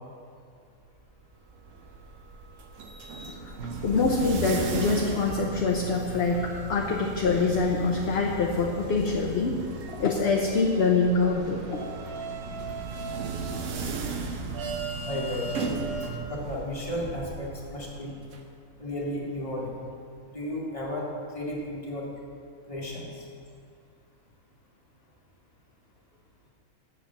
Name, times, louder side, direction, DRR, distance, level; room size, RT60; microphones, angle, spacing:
sound 1, 1.3-18.4, right 4 dB, 65° right, 1.1 m, -38 dB
sound 2, 3.6-16.1, right 4 dB, 80° right, 1.4 m, -39 dB
voice 1, 3.8-9.6 9.9-11.8, left 4 dB, 55° left, 0 dB, 0.9 m, -25 dB
voice 2, 15.0-15.4 16.3-18.2 18.8-19.7 20.3-22.1 22.7-23.2, left 1 dB, 25° left, -4 dB, 1.7 m, -34 dB
7.7 x 6.7 x 7.1 m, 2.3 s
omnidirectional pair, 1.5 m